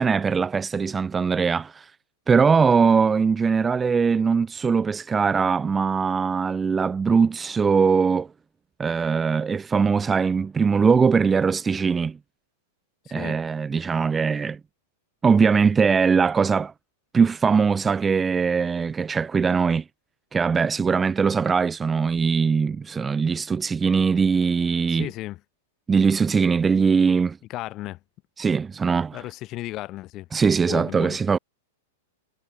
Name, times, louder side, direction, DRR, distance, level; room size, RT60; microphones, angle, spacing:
voice 1, 0.0-1.9 2.3-8.3 8.8-12.2 13.1-14.6 15.2-16.7 17.1-19.8 20.3-25.1 25.9-27.4 28.4-29.2 30.3-31.4, right 5 dB, 15° right, 0.6 m, -21 dB
voice 2, 24.9-25.4 27.5-28.0 29.1-30.3 30.7-31.2, left 16 dB, 35° left, 6.5 m, -34 dB
hypercardioid pair, 135°, 0 cm